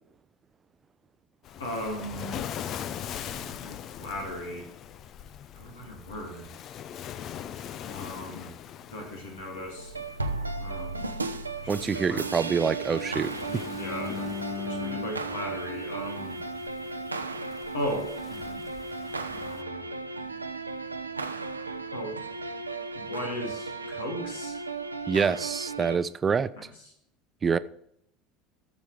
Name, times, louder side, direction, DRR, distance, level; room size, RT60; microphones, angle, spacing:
Waves surf, 1.4-19.6, left 10 dB, 45° left, 0.6 m, -42 dB
voice 1, 1.6-2.5 3.2-4.7 5.5-6.5 7.8-8.5 8.9-9.9 10.6-11.1 11.6-12.2 13.5-16.4 17.7-18.6 19.3-19.9 21.9-22.2 22.9-24.6 26.6-26.7, equal, 75° left, 2.5 m, -37 dB
sound 1, 9.8-26.0, right 3 dB, 90° right, 0.7 m, -35 dB
voice 2, 11.7-13.3 25.1-26.5 27.4-27.6, right 6 dB, 25° right, 0.6 m, -26 dB
Bowed string instrument, 12.4-16.5, left 8 dB, 25° left, 1.7 m, -40 dB
13.5 x 7.2 x 3.4 m
figure-of-eight pair, 70°, 0 cm